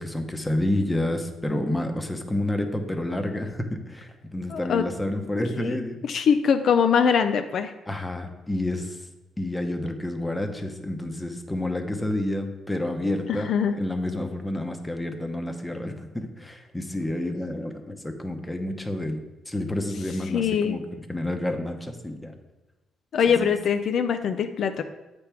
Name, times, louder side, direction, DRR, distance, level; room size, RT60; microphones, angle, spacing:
voice 1, 0.0-6.0 7.9-9.0 9.4-19.2 19.5-22.4 23.4-23.5, left 1 dB, 10° left, 5 dB, 0.8 m, -29 dB
voice 2, 4.5-4.9 5.6-7.7 13.3-13.8 20.3-20.8 23.1-24.8, left 7 dB, 65° left, 8 dB, 0.4 m, -23 dB
8.0 x 3.4 x 5.8 m, 1.1 s
cardioid pair, 90°, 0 cm